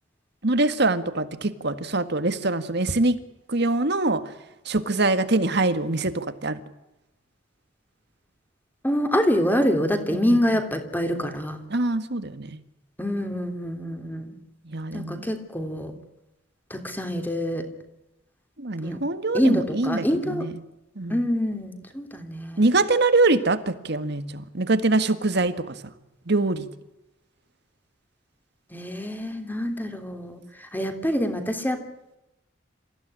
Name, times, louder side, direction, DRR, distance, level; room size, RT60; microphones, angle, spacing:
voice 1, 0.4-3.2 3.5-4.2 4.7-6.6 10.1-10.4 11.7-12.6 14.7-15.2 18.6-20.5 21.0-21.2 22.6-25.8 26.3-26.7, right 2 dB, 60° right, 10 dB, 1.8 m, -24 dB
voice 2, 8.8-11.6 13.0-14.3 14.9-15.9 16.7-17.6 18.8-19.0 19.3-20.5 21.1-22.7 28.7-30.4 30.7-31.9, equal, 10° left, 6 dB, 3.2 m, -26 dB
27.5 x 15.5 x 10.0 m, 0.95 s
head